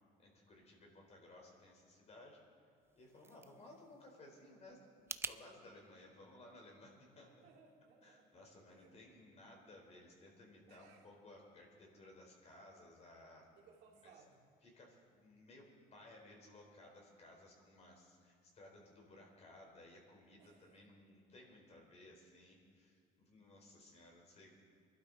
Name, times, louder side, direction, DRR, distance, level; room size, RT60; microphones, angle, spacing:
voice 1, 0.2-2.4 2.9-7.3 8.0-13.5 14.0-14.1 14.6-24.5, left 1 dB, 40° left, 0 dB, 4.0 m, -59 dB
sound 1, 2.8-5.4, right 4 dB, 15° right, 0.4 m, -49 dB
voice 2, 7.2-8.4 8.7-9.0 10.7-11.1 13.6-14.4 20.4-20.9, right 5 dB, 80° right, -1 dB, 2.4 m, -65 dB
23.5 x 12.0 x 4.0 m, 2.3 s
cardioid pair, 110°, 17 cm